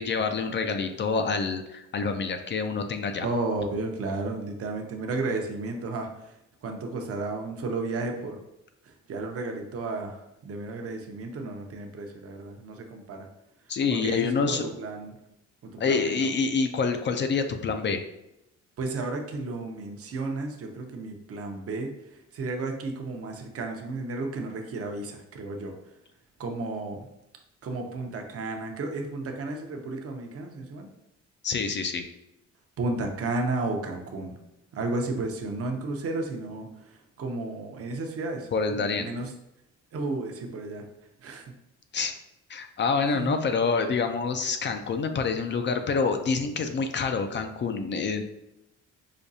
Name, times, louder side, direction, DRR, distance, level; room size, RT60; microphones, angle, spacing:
voice 1, 0.0-3.3 13.7-14.6 15.8-18.0 31.4-32.0 38.5-39.1 41.9-42.1 42.5-48.2, left 4 dB, 40° left, 7 dB, 0.4 m, -27 dB
voice 2, 3.2-6.3 6.6-8.4 8.8-13.3 13.9-15.1 15.6-16.3 18.8-21.9 22.3-25.7 26.4-27.1 27.6-30.9 32.8-34.3 34.7-36.7 37.2-39.3 39.9-40.8 41.2-41.4 43.1-43.4, right 3 dB, 50° right, 3 dB, 0.7 m, -33 dB
5.0 x 2.3 x 2.6 m, 0.86 s
cardioid pair, 90°, 30 cm